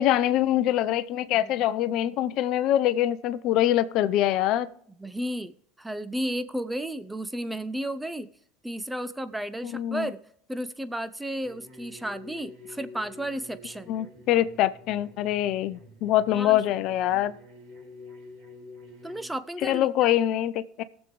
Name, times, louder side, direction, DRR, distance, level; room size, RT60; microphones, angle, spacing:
voice 1, 0.0-4.7 9.6-10.1 13.9-17.3 19.6-20.8, left 12 dB, 60° left, 0.6 m, -24 dB
voice 2, 5.0-8.3 8.6-10.2 10.5-13.9 16.3-16.6 17.1-17.2 19.0-20.1, right 1 dB, 5° right, 0.6 m, -33 dB
sound 1, 11.4-19.3, left 2 dB, 65° right, 5.3 m, -48 dB
18.0 x 7.3 x 3.1 m
supercardioid pair, 95°, 0 cm